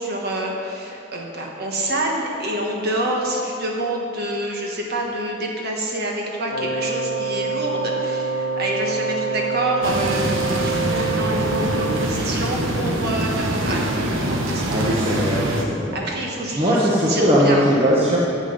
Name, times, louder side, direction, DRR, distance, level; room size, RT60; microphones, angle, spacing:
voice 1, 0.0-14.8 15.2-15.4 15.9-17.6, right 1 dB, 55° right, -1 dB, 1.4 m, -27 dB
Wind instrument woodwind instrument, 6.5-12.2, right 3 dB, 65° left, 0.9 m, -26 dB
sound 1, 9.8-15.6, right 1 dB, 85° right, 1.2 m, -24 dB
voice 2, 14.6-16.0 16.6-18.2, equal, 30° right, -5 dB, 1.2 m, -19 dB
12.5 x 7.8 x 5.4 m, 2.7 s
head